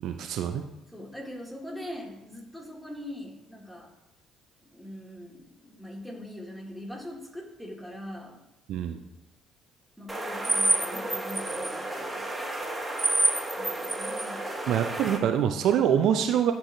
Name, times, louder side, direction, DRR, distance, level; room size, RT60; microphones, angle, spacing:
voice 1, 0.0-0.6 8.7-9.0 14.7-16.5, right 9 dB, 60° right, 6 dB, 0.4 m, -25 dB
voice 2, 0.9-3.9 4.7-8.4 10.0-12.3 13.5-14.5, left 1 dB, 5° left, -1 dB, 1.8 m, -42 dB
sound 1, 10.1-15.2, right 2 dB, 15° right, 1.4 m, -29 dB
10.0 x 4.2 x 2.6 m, 0.92 s
figure-of-eight pair, 45°, 0 cm